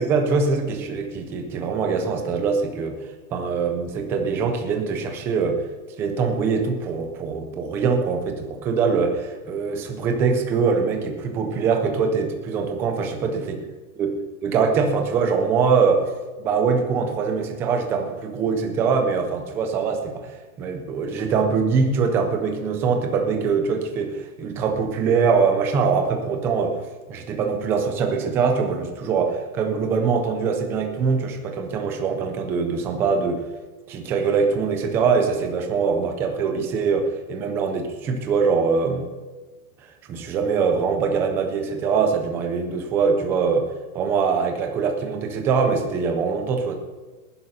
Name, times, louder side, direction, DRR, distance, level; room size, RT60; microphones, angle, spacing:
voice 1, 0.0-3.0 3.3-5.6 6.0-13.6 14.0-14.1 14.4-16.1 16.4-20.3 20.6-26.8 27.1-33.4 33.9-39.1 40.1-43.7 43.9-46.7, right 5 dB, 5° right, 4 dB, 0.3 m, -23 dB
19.0 x 11.0 x 4.0 m, 1.3 s
hypercardioid pair, 145°, 44 cm